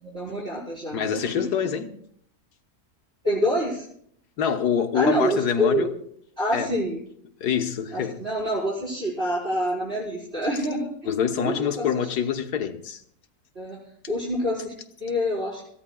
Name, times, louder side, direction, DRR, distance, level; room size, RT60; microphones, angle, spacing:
voice 1, 0.0-1.5 3.2-3.8 4.9-5.9 6.4-7.0 7.9-10.9 11.4-11.9 13.6-13.8 14.1-14.7 15.0-15.6, equal, 35° right, 5.3 m, -26 dB
voice 2, 0.9-1.9 4.4-5.9 6.5-6.7 7.4-8.2 11.1-13.0, left 8 dB, 80° left, 1.7 m, -25 dB
27.0 x 15.5 x 2.3 m
omnidirectional pair, 1.7 m